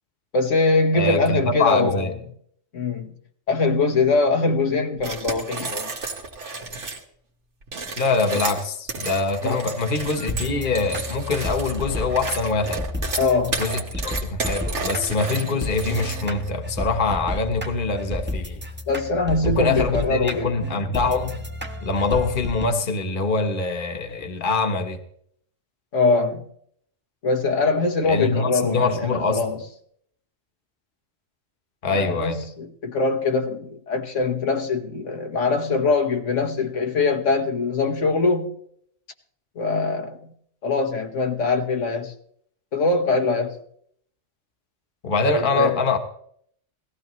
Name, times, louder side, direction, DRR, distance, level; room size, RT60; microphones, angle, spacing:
voice 1, 0.3-2.1 2.7-3.1 3.5-5.9 9.4-9.6 13.2-13.6 18.9-20.7 25.9-26.5 27.2-29.6 31.8-38.5 39.6-40.3 40.6-42.1 42.7-43.6 45.2-45.8, left 3 dB, 90° left, 1.7 m, -22 dB
voice 2, 0.9-2.1 8.0-12.8 13.6-18.6 19.4-21.4 21.8-25.0 28.0-29.4 31.8-32.4 45.0-46.0, left 3 dB, 45° left, 1.4 m, -24 dB
sound 1, 5.0-7.0 7.6-16.5, right 3 dB, 75° right, 1.9 m, -32 dB
sound 2, 10.2-22.7, left 1 dB, 10° right, 1.0 m, -32 dB
18.0 x 14.5 x 3.1 m
omnidirectional pair, 1.2 m